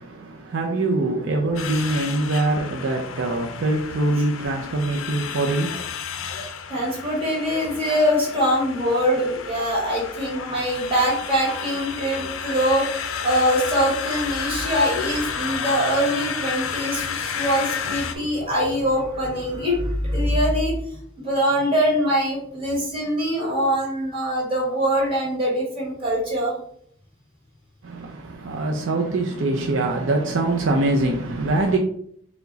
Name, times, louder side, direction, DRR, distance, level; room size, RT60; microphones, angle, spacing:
voice 1, 0.0-5.7 27.8-31.8, right 2 dB, 60° right, 0.5 m, -23 dB
sound 1, 1.6-18.2, left 6 dB, 70° left, 0.5 m, -31 dB
voice 2, 6.3-12.9 13.2-26.5, equal, 25° right, 1.6 m, -23 dB
4.6 x 2.2 x 3.8 m
head